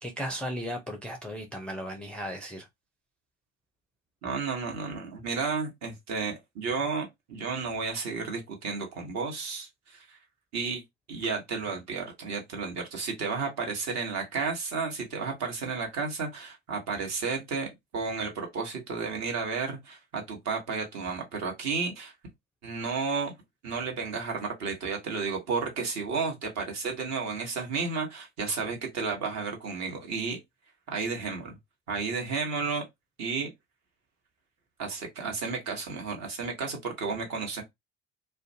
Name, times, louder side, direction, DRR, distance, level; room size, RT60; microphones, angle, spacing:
voice 1, 0.0-2.6, equal, 5° left, 0.4 m, -36 dB
voice 2, 4.2-10.2 10.5-10.8 11.1-22.1 22.6-23.3 23.6-30.4 30.9-31.6 31.9-32.8 33.2-33.5 34.8-37.6, right 4 dB, 45° right, 1.2 m, -32 dB
2.4 x 2.2 x 2.7 m
hypercardioid pair, 70°, 37 cm